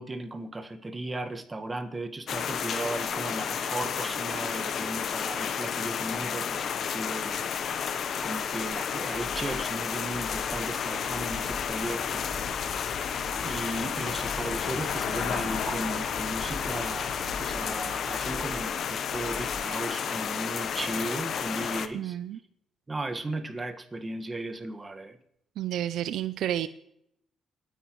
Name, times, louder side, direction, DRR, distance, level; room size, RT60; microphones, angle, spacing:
voice 1, 0.0-7.9 8.2-12.3 12.6-13.1 13.4-22.2 22.9-25.2, right 2 dB, 25° right, 6 dB, 1.6 m, -36 dB
sound 1, 2.3-21.9, left 7 dB, 60° left, 0.9 m, -32 dB
sound 2, 9.1-9.8 10.1-10.8 11.1-11.8 12.1-12.8 13.1-13.8 14.1-14.8 15.1-15.8 16.1-16.8 17.1-17.8 18.1-18.8 19.1-19.8, left 2 dB, 35° left, 1.9 m, -45 dB
Traffic noise roadway noise / Bicycle, 10.4-19.3, left 6 dB, 80° left, 1.6 m, -40 dB
voice 2, 21.9-22.4 25.6-26.7, right 11 dB, 80° right, 13 dB, 0.5 m, -30 dB
29.0 x 10.0 x 3.1 m, 0.77 s
cardioid pair, 90°, 0 cm